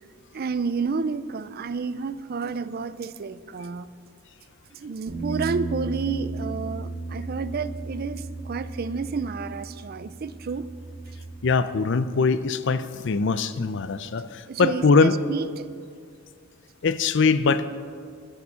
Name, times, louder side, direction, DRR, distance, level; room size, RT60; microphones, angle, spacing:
voice 1, 0.3-3.9 4.7-10.7 14.5-15.7, right 4 dB, 50° right, 15 dB, 0.4 m, -30 dB
Bass guitar, 5.1-11.3, right 3 dB, 65° right, 3.3 m, -35 dB
voice 2, 11.4-15.2 16.8-17.7, left 4 dB, 60° left, 13 dB, 0.5 m, -22 dB
12.5 x 11.0 x 5.6 m, 2.2 s
head